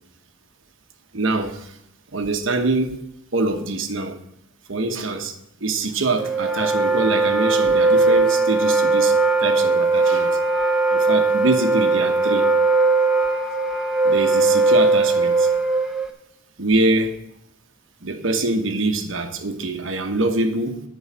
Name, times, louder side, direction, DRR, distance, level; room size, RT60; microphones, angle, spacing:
voice 1, 1.1-1.8 2.1-3.0 3.3-4.2 4.7-5.3 5.6-10.4 10.9-12.5 14.0-15.5 16.6-17.2 18.0-20.8, right 2 dB, 75° right, 5 dB, 1.2 m, -24 dB
Wind instrument woodwind instrument, 6.2-16.1, right 3 dB, 5° right, 0.8 m, -19 dB
11.0 x 4.7 x 7.3 m, 0.81 s
head